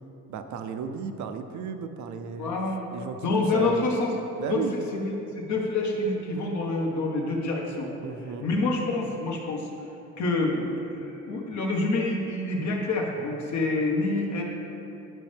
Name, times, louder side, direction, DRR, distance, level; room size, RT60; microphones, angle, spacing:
voice 1, 0.3-2.5 2.9-3.9 4.4-4.8 8.0-8.5, right 6 dB, 70° right, 8 dB, 0.7 m, -34 dB
voice 2, 2.4-2.8 3.1-4.1 4.4-7.9 8.4-9.7 10.2-14.4, left 2 dB, 70° left, -1 dB, 1.4 m, -27 dB
10.5 x 5.4 x 3.5 m, 3.0 s
cardioid pair, 90°, 30 cm